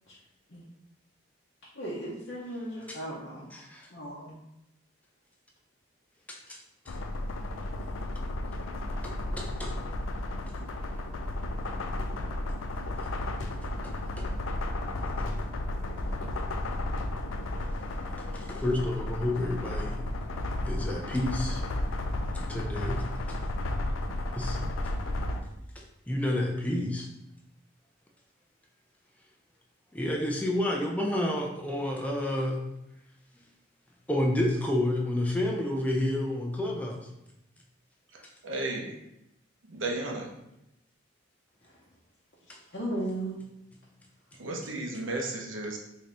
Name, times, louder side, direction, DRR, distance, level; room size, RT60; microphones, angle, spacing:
voice 1, 1.7-3.4 3.9-4.3 41.6-41.8 42.5-43.4, right 1 dB, 60° left, -7 dB, 0.8 m, -36 dB
voice 2, 3.5-3.9 6.3-6.6 6.9-7.0 9.0-9.8 13.4-13.5 13.8-14.3 18.3-20.0 20.7-21.6 22.3-23.4 24.3-24.6 25.8-27.1 29.9-32.6 34.1-37.1 42.5-42.6, left 1 dB, 5° left, 0 dB, 0.4 m, -30 dB
sound 1, 6.9-25.4, left 1 dB, 85° left, 0.4 m, -33 dB
voice 3, 38.1-39.0 39.7-40.3 44.4-45.8, right 2 dB, 75° right, 1 dB, 0.7 m, -34 dB
3.7 x 2.7 x 3.3 m, 0.85 s
head